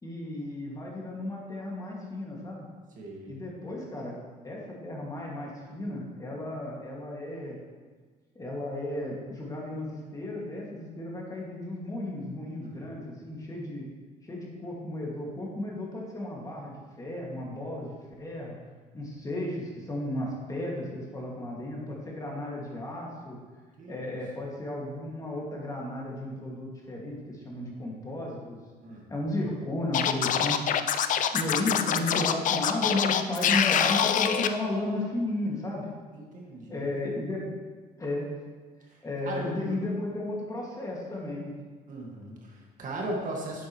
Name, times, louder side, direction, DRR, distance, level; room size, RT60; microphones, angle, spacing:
voice 1, 0.0-2.7 3.3-4.1 4.4-7.6 8.4-13.9 14.2-18.6 18.9-23.4 23.9-28.6 29.1-30.6 31.1-35.9 36.7-37.4 38.0-38.3 39.0-41.5, left 1 dB, 20° left, -3 dB, 2.1 m, -34 dB
voice 2, 3.0-3.4 12.6-12.9 23.8-24.1 28.8-29.1 36.1-36.9 39.2-39.8 41.9-43.7, right 1 dB, 50° right, -2 dB, 1.9 m, -38 dB
Scratching (performance technique), 29.9-34.5, left 9 dB, 50° left, 0.5 m, -25 dB
9.6 x 7.6 x 3.1 m, 1.4 s
cardioid pair, 110°, 17 cm